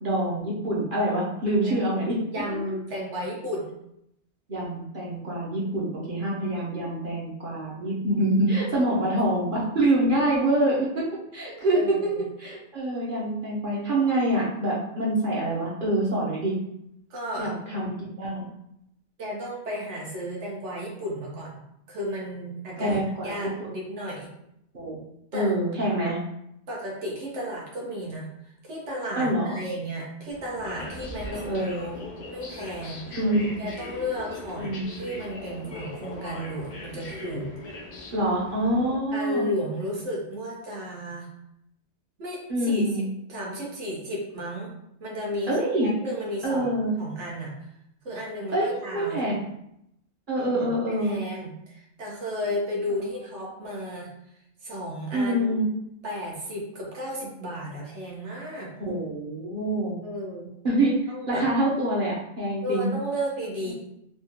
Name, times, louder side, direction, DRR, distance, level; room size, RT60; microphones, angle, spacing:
voice 1, 0.0-2.2 4.5-11.0 11.3-12.1 12.4-16.5 17.4-18.4 22.8-23.7 24.7-25.0 25.3-26.2 29.2-29.6 31.3-31.8 33.1-33.7 34.6-35.0 38.1-39.5 42.5-43.0 45.5-45.9 46.4-46.9 48.5-48.7 48.9-49.4 50.3-51.2 55.1-55.6 58.8-59.9 60.6-61.0 61.3-62.9 63.7-63.8, right 1 dB, 50° right, -5 dB, 0.8 m, -26 dB
voice 2, 2.3-3.7 8.9-9.0 11.7-12.2 17.1-17.5 19.2-24.3 25.3-25.5 26.7-32.0 32.3-33.2 33.6-37.5 39.1-41.3 42.2-44.7 45.0-45.6 45.8-47.7 48.0-49.5 50.4-54.1 54.6-55.6 56.0-58.7 60.0-60.5 61.1-61.4 62.6-63.7, equal, 90° right, -3 dB, 1.3 m, -34 dB
sound 1, 30.3-39.0, left 2 dB, 50° left, 0.6 m, -40 dB
3.4 x 2.3 x 2.8 m, 0.79 s
omnidirectional pair, 1.2 m